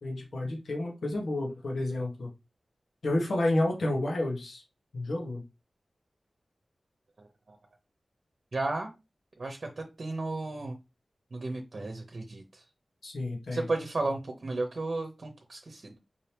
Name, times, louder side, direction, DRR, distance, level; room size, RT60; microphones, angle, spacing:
voice 1, 0.0-2.3 3.0-4.6 4.9-5.4 13.0-13.6, left 1 dB, 85° left, 0 dB, 1.4 m, -30 dB
voice 2, 7.2-7.6 8.5-8.9 9.4-10.8 11.3-12.6 13.5-16.0, right 2 dB, 55° right, 3 dB, 0.8 m, -34 dB
5.2 x 2.9 x 3.4 m, 0.26 s
wide cardioid pair, 80°, 0 cm